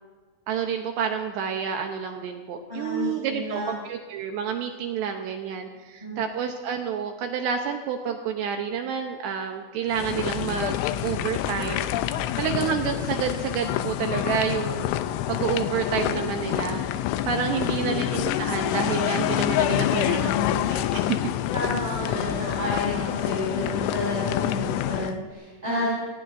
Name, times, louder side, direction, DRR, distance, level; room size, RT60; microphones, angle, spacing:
voice 1, 0.5-11.9 12.4-14.9 15.3-16.9 17.3-21.2 25.7-26.0, right 7 dB, 80° right, 4 dB, 2.5 m, -29 dB
voice 2, 2.7-3.7 6.0-6.2 21.5-26.0, left 1 dB, 10° right, -9 dB, 5.3 m, -30 dB
sound 1, 9.9-25.1, left 12 dB, 80° left, 2.9 m, -27 dB
27.5 x 18.0 x 2.7 m, 1.5 s
omnidirectional pair, 5.9 m